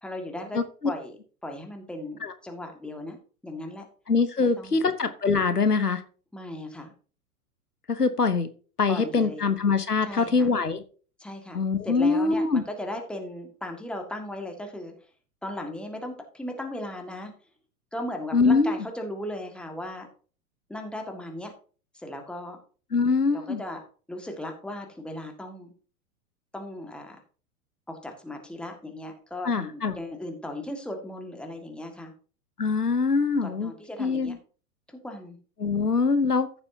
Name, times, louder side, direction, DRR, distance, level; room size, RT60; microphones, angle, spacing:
voice 1, 0.0-1.2 1.4-3.2 3.4-3.9 4.4-4.9 6.3-6.9 8.9-9.5 10.0-10.5 11.2-14.9 15.4-17.3 17.9-20.1 20.7-21.5 21.9-22.6 23.3-23.8 24.1-25.7 26.5-27.2 27.9-32.1 33.4-34.4 34.9-35.4, left 1 dB, ahead, 3 dB, 1.9 m, -37 dB
voice 2, 4.1-6.0 7.9-8.5 8.8-10.8 11.5-12.6 18.3-18.7 22.9-23.6 29.4-29.9 32.6-33.7 34.0-34.4 35.6-36.5, left 4 dB, 85° left, 11 dB, 1.0 m, -23 dB
14.5 x 7.0 x 2.8 m, 0.40 s
figure-of-eight pair, 95°, 45 cm